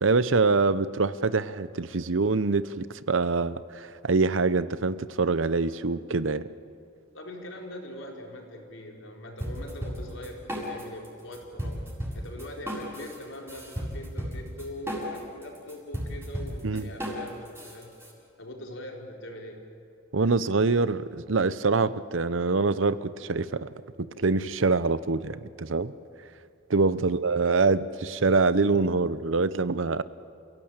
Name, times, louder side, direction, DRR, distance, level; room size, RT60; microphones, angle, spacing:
voice 1, 0.0-6.4 16.6-16.9 20.1-23.7 24.2-25.9 26.7-30.0, right 3 dB, 75° right, 15 dB, 0.8 m, -25 dB
voice 2, 7.1-11.8 12.1-17.9 18.4-19.7 27.0-27.3, left 1 dB, 80° left, 1 dB, 4.3 m, -42 dB
sound 1, 9.4-11.1 11.3-18.1, equal, 10° right, 7.1 m, -34 dB
29.0 x 17.0 x 8.9 m, 2.5 s
head